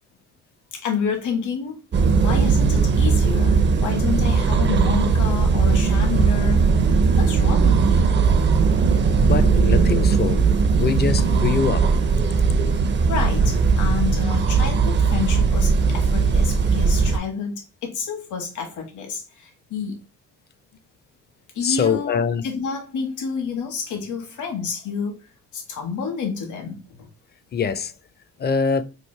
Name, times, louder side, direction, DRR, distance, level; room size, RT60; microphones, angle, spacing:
voice 1, 0.7-1.8 2.1-6.6 7.2-8.2 12.8-20.0 21.5-25.2 25.5-27.1, left 6 dB, 75° left, 1.2 m, -29 dB
sound 1, 1.9-17.2, right 5 dB, 40° right, 0.5 m, -18 dB
voice 2, 9.2-10.5 10.8-12.0 21.6-22.4 27.5-27.9 28.4-28.8, left 6 dB, 35° left, 0.4 m, -23 dB
3.2 x 2.5 x 4.3 m
cardioid pair, 90°, 30 cm